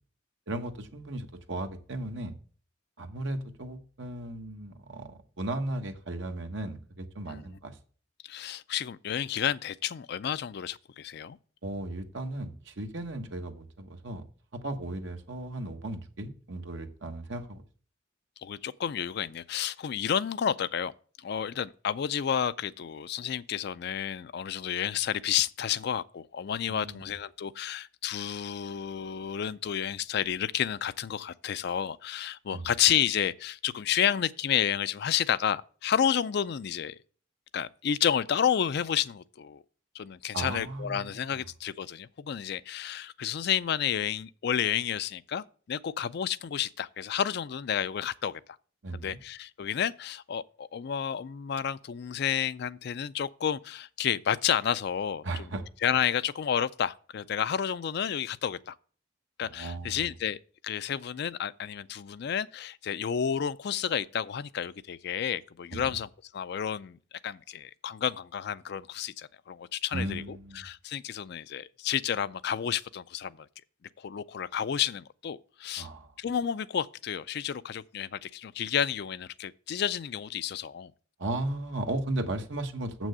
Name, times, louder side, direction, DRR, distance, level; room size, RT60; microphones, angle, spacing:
voice 1, 0.5-2.4 3.0-7.8 11.6-14.2 14.5-17.6 26.7-27.1 32.5-32.7 40.3-41.4 48.8-49.2 55.2-55.6 59.4-60.1 65.7-66.0 69.9-70.6 75.8-76.1 81.2-83.1, right 1 dB, 65° right, 1.2 m, -36 dB
voice 2, 8.3-11.4 18.4-20.9 21.2-37.0 37.5-39.6 39.9-48.4 48.9-55.5 55.8-58.8 59.4-60.4 60.6-66.1 66.3-67.0 67.2-73.4 74.0-75.9 76.2-80.9, left 9 dB, 55° left, 0.4 m, -31 dB
7.4 x 6.2 x 6.7 m
head